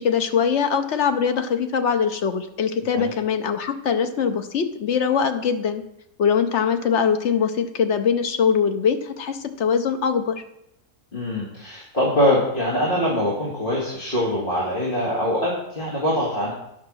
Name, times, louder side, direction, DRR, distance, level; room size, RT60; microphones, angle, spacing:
voice 1, 0.0-5.8 6.2-10.4, left 6 dB, 55° left, 8 dB, 1.0 m, -22 dB
voice 2, 11.1-16.5, left 1 dB, 35° left, -6 dB, 2.3 m, -23 dB
9.5 x 6.0 x 6.2 m, 0.79 s
omnidirectional pair, 1.6 m